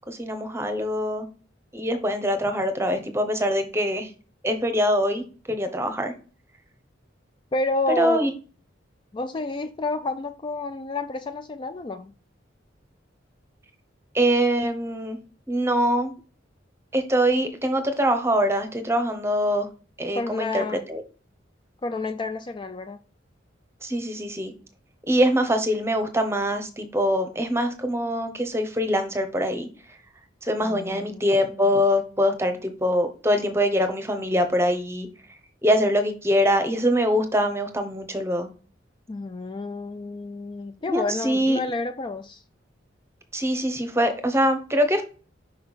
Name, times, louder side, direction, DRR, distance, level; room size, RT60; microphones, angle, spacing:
voice 1, 0.1-1.3 1.7-4.1 4.4-6.1 8.0-8.3 14.1-15.2 15.5-16.1 16.9-19.7 20.0-21.0 23.8-24.5 25.1-29.7 30.4-35.1 35.6-38.5 40.9-41.6 43.3-45.0, equal, 15° right, 0.9 m, -23 dB
voice 2, 7.5-8.3 9.1-12.1 20.1-20.8 21.8-23.0 30.6-31.3 39.1-42.4, left 2 dB, 25° left, 0.3 m, -30 dB
5.7 x 5.2 x 4.0 m
head